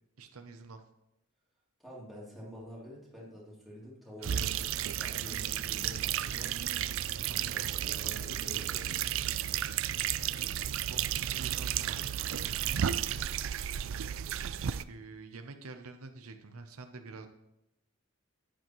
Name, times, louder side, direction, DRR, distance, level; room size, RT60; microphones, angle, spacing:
voice 1, 0.2-0.8 4.2-4.5 7.3-9.4 10.4-13.2 14.9-17.3, right 3 dB, 75° right, 7 dB, 0.7 m, -49 dB
voice 2, 1.8-6.5 7.5-8.9, equal, ahead, -8 dB, 3.0 m, -48 dB
sound 1, 4.2-14.8, right 10 dB, 60° right, 0.4 m, -33 dB
10.5 x 10.0 x 3.1 m, 0.87 s
head